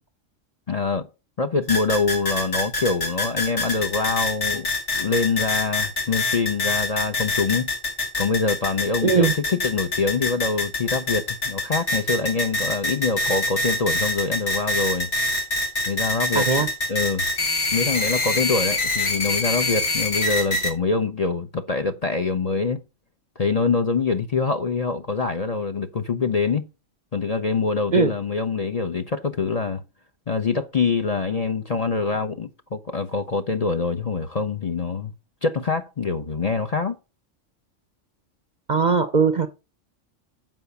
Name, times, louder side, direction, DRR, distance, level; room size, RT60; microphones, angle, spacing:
voice 1, 0.7-1.1 1.4-4.7 4.9-7.7 8.2-15.1 15.9-16.5 16.9-17.2 17.7-22.8 23.4-26.6 27.1-29.8 30.3-35.1 35.4-37.0, left 4 dB, 35° left, 0.7 m, -24 dB
sound 1, 1.7-20.7, left 2 dB, 60° left, 2.6 m, -25 dB
voice 2, 9.0-9.3 16.3-16.7 27.9-28.1 38.7-39.5, right 5 dB, 45° right, 0.7 m, -19 dB
7.7 x 4.9 x 6.9 m
omnidirectional pair, 1.3 m